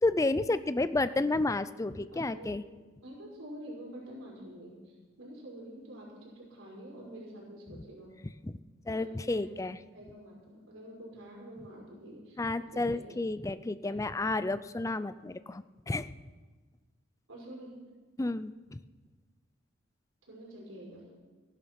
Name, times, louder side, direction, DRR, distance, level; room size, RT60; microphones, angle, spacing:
voice 1, 0.0-2.6 7.7-7.8 8.2-8.6 8.9-9.8 12.4-16.1 18.2-18.8, left 2 dB, 15° left, 14 dB, 0.4 m, -31 dB
voice 2, 2.1-2.5 3.0-4.7 5.2-8.1 8.8-9.6 9.9-12.4 12.7-13.0 13.8-14.0 17.3-17.7 20.3-21.0, right 1 dB, 85° right, -3 dB, 5.2 m, -47 dB
15.0 x 11.0 x 5.9 m, 1.3 s
head